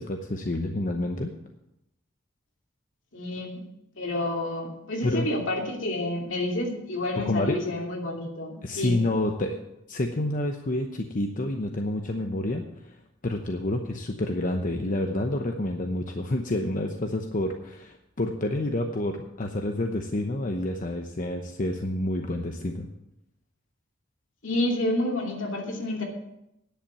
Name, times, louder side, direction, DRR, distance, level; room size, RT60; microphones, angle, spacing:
voice 1, 0.0-1.3 5.0-5.3 7.3-7.6 8.6-9.6 9.9-12.9 13.2-22.9, left 1 dB, 45° left, 4 dB, 0.9 m, -28 dB
voice 2, 3.1-3.6 4.0-8.9 24.4-26.0, left 1 dB, 70° left, 1 dB, 2.7 m, -29 dB
10.5 x 8.2 x 7.5 m, 0.86 s
head